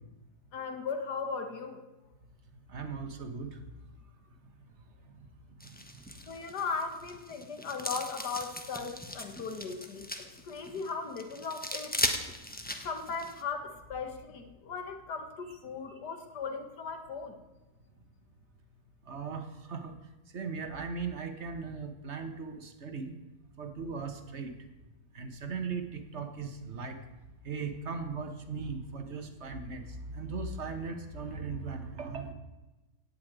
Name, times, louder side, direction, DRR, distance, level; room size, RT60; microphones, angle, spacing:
voice 1, 0.5-1.8 6.2-10.1 10.4-11.9 12.8-17.4, left 5 dB, 80° left, 6 dB, 2.0 m, -37 dB
voice 2, 2.7-3.6 5.2-5.3 19.1-19.9 20.3-23.1 23.6-24.5 25.1-27.0 27.4-32.3, right 4 dB, 45° right, 6 dB, 1.6 m, -38 dB
sound 1, 5.6-13.4, left 1 dB, 5° left, 1.0 m, -38 dB
17.0 x 5.8 x 8.9 m, 1.1 s
omnidirectional pair, 1.7 m